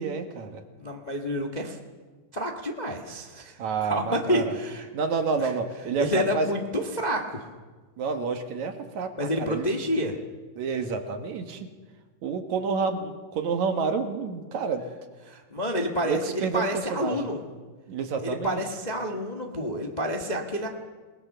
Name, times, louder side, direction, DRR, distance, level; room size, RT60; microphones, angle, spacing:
voice 1, 0.0-0.6 3.6-4.6 4.9-6.5 8.0-9.7 10.6-11.7 12.2-14.8 16.0-17.3 17.9-18.6, right 5 dB, 65° right, 6 dB, 2.6 m, -29 dB
voice 2, 0.8-1.8 2.3-3.6 3.8-4.9 5.4-5.5 6.0-7.5 9.2-10.1 15.3-17.4 18.2-20.7, equal, 20° left, 2 dB, 1.1 m, -29 dB
28.5 x 19.5 x 6.8 m, 1.4 s
omnidirectional pair, 3.8 m